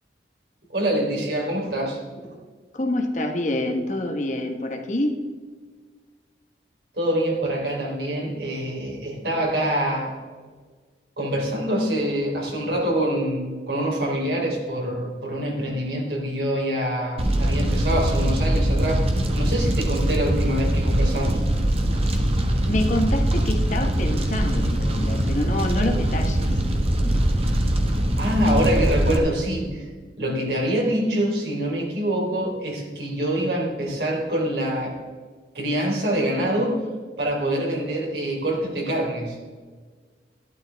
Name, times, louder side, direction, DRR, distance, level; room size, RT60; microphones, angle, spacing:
voice 1, 0.7-2.4 6.9-10.2 11.2-21.4 28.2-29.9 30.2-34.9 35.5-36.9 37.2-39.6, right 1 dB, 65° right, -2 dB, 3.6 m, -25 dB
voice 2, 2.7-5.2 22.7-26.6, left 1 dB, 45° left, 5 dB, 1.2 m, -26 dB
Fire, 17.2-29.2, right 1 dB, 35° right, 1.2 m, -22 dB
12.5 x 12.0 x 3.4 m, 1.5 s
head